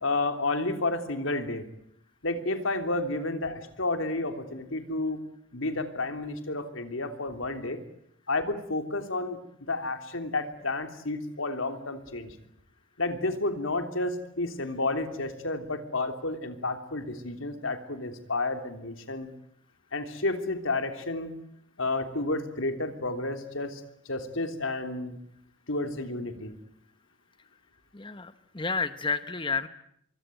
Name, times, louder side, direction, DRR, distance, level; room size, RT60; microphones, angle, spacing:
voice 1, 0.0-1.6 2.2-5.2 5.5-7.8 8.3-9.4 9.7-12.3 13.0-19.3 19.9-21.3 21.8-25.2 25.7-26.5, left 2 dB, 85° left, 7 dB, 3.3 m, -31 dB
voice 2, 27.9-29.7, left 4 dB, 25° left, 11 dB, 1.1 m, -31 dB
25.5 x 24.5 x 9.2 m, 0.72 s
head